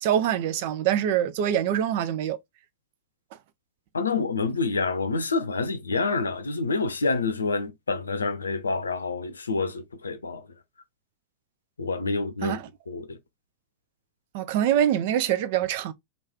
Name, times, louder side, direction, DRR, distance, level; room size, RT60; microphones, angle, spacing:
voice 1, 0.0-2.4 12.4-12.7 14.3-15.9, right 10 dB, 50° right, 0.4 m, -24 dB
voice 2, 3.9-10.4 11.8-12.6 12.9-13.2, left 3 dB, 75° left, 0.6 m, -27 dB
3.1 x 2.5 x 3.3 m
figure-of-eight pair, 90°, 0 cm